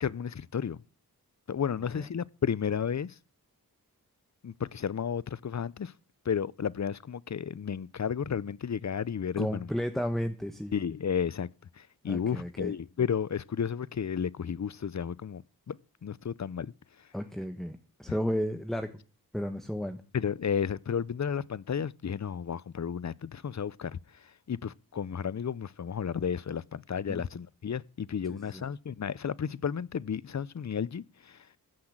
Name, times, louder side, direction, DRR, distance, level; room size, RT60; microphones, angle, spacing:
voice 1, 0.0-0.8 1.5-3.1 4.4-5.9 6.3-9.7 10.7-11.5 11.8-15.4 15.7-15.8 16.0-16.7 20.1-24.0 24.5-31.4, left 7 dB, 45° left, 0.6 m, -32 dB
voice 2, 9.4-10.7 12.1-12.7 17.1-18.9 19.3-20.0 27.1-27.2 28.3-28.6, equal, ahead, 1.3 m, -33 dB
14.5 x 5.9 x 8.8 m
cardioid pair, 50°, 38 cm